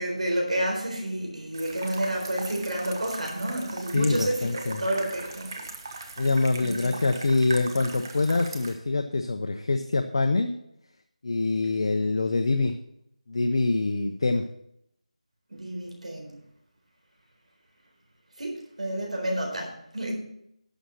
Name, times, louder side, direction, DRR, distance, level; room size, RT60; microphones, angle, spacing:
voice 1, 0.0-5.7 6.6-6.9 15.5-16.4 18.4-20.1, right 1 dB, 70° right, 0 dB, 4.1 m, -30 dB
sound 1, 1.5-8.8, right 3 dB, 30° right, 1.2 m, -40 dB
voice 2, 3.9-4.8 6.2-10.6 11.2-12.8 13.3-14.4, left 3 dB, 45° left, 6 dB, 0.7 m, -25 dB
11.5 x 6.4 x 6.4 m, 0.77 s
figure-of-eight pair, 170°, 4 cm